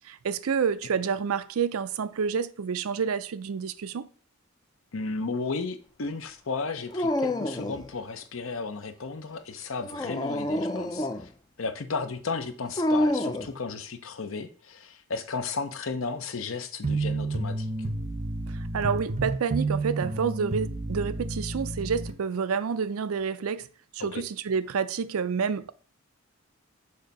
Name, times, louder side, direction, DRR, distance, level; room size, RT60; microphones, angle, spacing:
voice 1, 0.0-4.1 18.5-23.7 23.9-25.7, right 6 dB, 80° right, 0.5 m, -29 dB
voice 2, 4.9-11.3 11.6-17.7 24.0-24.2, left 4 dB, 65° left, 0.7 m, -34 dB
Dog, 6.9-7.9 9.8-11.3 12.8-13.5, left 1 dB, 20° left, 0.4 m, -27 dB
sound 1, 16.8-22.2, right 2 dB, 30° right, 0.6 m, -30 dB
6.5 x 2.7 x 5.2 m
head